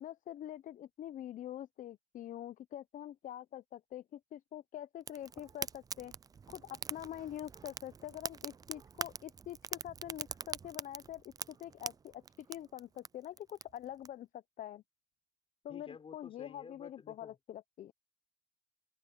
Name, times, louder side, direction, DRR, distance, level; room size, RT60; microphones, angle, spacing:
voice 1, 0.0-6.1 6.5-14.8 15.6-17.9, left 11 dB, 50° left, 0.5 m, -45 dB
Fire, 5.1-14.1, right 6 dB, 20° right, 0.3 m, -44 dB
voice 2, 15.7-17.4, left 5 dB, 35° left, 4.7 m, -52 dB
open air
cardioid pair, 110°, 17 cm